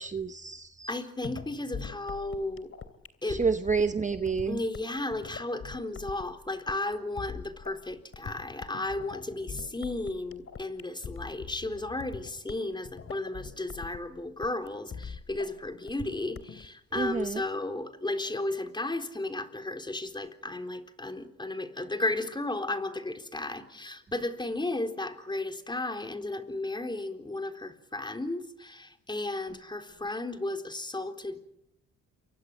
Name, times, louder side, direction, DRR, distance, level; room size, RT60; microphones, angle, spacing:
voice 1, 0.0-0.9 3.3-4.6 17.0-17.4, right 5 dB, 25° right, 9 dB, 1.0 m, -29 dB
voice 2, 0.9-2.7 3.2-3.5 4.5-31.4, left 2 dB, 15° left, 6 dB, 4.0 m, -34 dB
sound 1, 1.2-16.7, left 6 dB, 45° left, 3.0 m, -43 dB
29.0 x 24.0 x 7.7 m, 0.79 s
cardioid pair, 90°, 30 cm